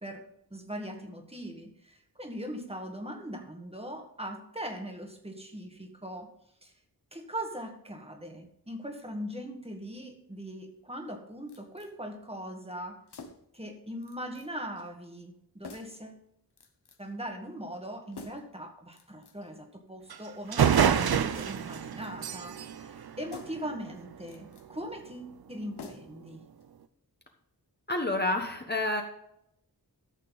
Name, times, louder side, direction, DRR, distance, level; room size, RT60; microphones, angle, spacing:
voice 1, 0.0-6.3 6.6-6.7 7.1-13.0 13.5-16.2 17.0-26.4, equal, 15° right, 3 dB, 1.5 m, -40 dB
sound 1, 11.5-11.9 13.1-13.6 14.0-14.5 14.8-14.9 15.6-16.0 16.6-17.1 18.1-18.6 18.9-19.5 20.6-21.0 21.6-22.3 23.3-23.7 24.2-24.7 25.8-26.3 26.6-26.7, left 4 dB, 80° left, 1.1 m, -48 dB
sound 2, 20.1-20.2 20.5-24.0, right 8 dB, 70° right, 0.6 m, -27 dB
voice 2, 27.9-29.0, left 2 dB, 25° left, 3 dB, 1.2 m, -28 dB
13.5 x 6.6 x 4.0 m, 0.76 s
wide cardioid pair, 100°, 39 cm